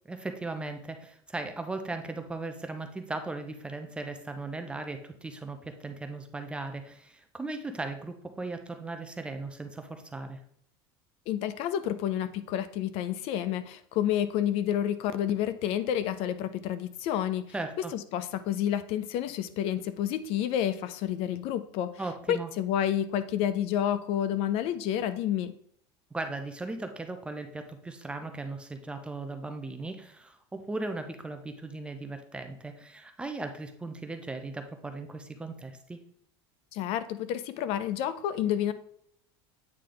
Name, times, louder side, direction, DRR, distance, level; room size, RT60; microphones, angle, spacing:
voice 1, 0.1-10.4 17.5-17.9 22.0-22.5 26.1-36.0, right 2 dB, 10° right, 6 dB, 0.5 m, -37 dB
voice 2, 11.3-17.5 17.9-22.0 22.3-25.5 36.7-38.7, left 10 dB, 50° left, 13 dB, 0.4 m, -29 dB
8.5 x 3.2 x 3.8 m, 0.67 s
cardioid pair, 150°, 12 cm